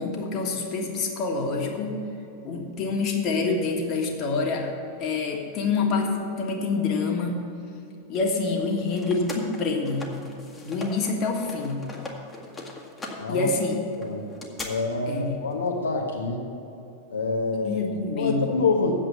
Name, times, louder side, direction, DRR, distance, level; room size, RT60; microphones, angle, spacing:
voice 1, 0.0-2.0 2.4-4.7 5.0-7.4 8.1-10.1 10.6-11.9 13.3-13.8 15.1-15.4 17.6-18.6, left 4 dB, 35° left, 1 dB, 1.6 m, -26 dB
sound 1, 8.5-11.1 11.4-14.7, left 2 dB, 15° left, 1.6 m, -40 dB
voice 2, 13.2-13.5 14.0-14.3 14.6-16.4 17.1-17.9 18.1-18.9, left 4 dB, 70° left, 0 dB, 1.1 m, -26 dB
8.5 x 7.4 x 8.2 m, 2.8 s
figure-of-eight pair, 90°, 0 cm